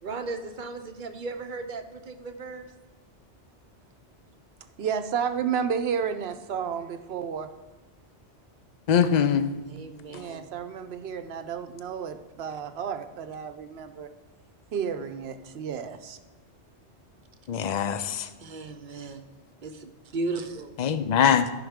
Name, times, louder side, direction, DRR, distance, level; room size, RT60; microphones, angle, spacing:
voice 1, 0.0-2.7 9.6-10.5 18.4-19.2 19.6-20.7, right 3 dB, 50° right, 0.8 m, -36 dB
voice 2, 4.8-7.5 10.1-14.1 14.7-16.2, right 7 dB, 70° right, 0.9 m, -31 dB
voice 3, 8.9-9.5 17.5-18.3 20.8-21.5, left 8 dB, 50° left, 0.6 m, -22 dB
14.0 x 5.5 x 3.6 m
omnidirectional pair, 1.2 m